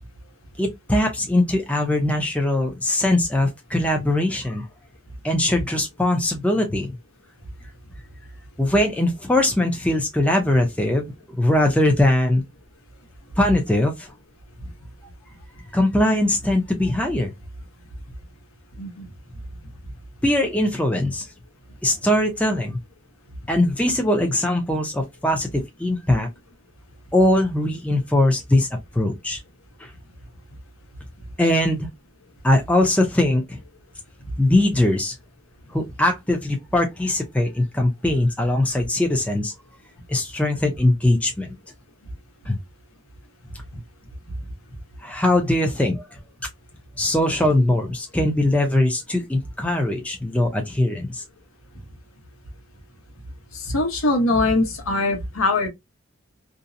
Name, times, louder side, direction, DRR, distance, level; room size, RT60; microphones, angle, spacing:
voice 1, 0.6-4.6 5.2-7.0 8.6-12.4 13.4-14.1 15.7-17.3 20.2-21.3 21.8-22.8 23.5-26.3 27.1-28.7 28.9-29.4 29.8-29.9 31.4-31.9 32.4-33.6 34.4-35.1 35.7-39.5 40.1-41.5 42.5-42.6 45.0-46.1 47.0-51.2, left 1 dB, 5° left, 0.4 m, -21 dB
voice 2, 53.5-55.7, left 2 dB, 85° left, 0.9 m, -22 dB
2.6 x 2.0 x 2.5 m
head